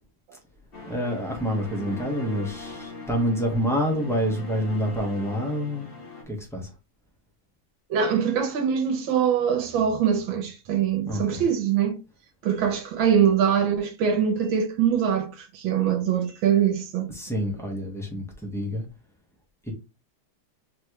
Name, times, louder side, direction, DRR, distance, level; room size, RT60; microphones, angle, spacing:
sound 1, 0.7-6.2, left 3 dB, 30° left, 1.5 m, -40 dB
voice 1, 0.9-5.9 6.3-6.7 11.1-11.4 17.1-18.8 19.6-19.7, equal, ahead, 1.2 m, -27 dB
voice 2, 7.9-12.0 12.4-17.1, right 8 dB, 85° right, 1.7 m, -23 dB
4.3 x 3.3 x 3.2 m
omnidirectional pair, 2.1 m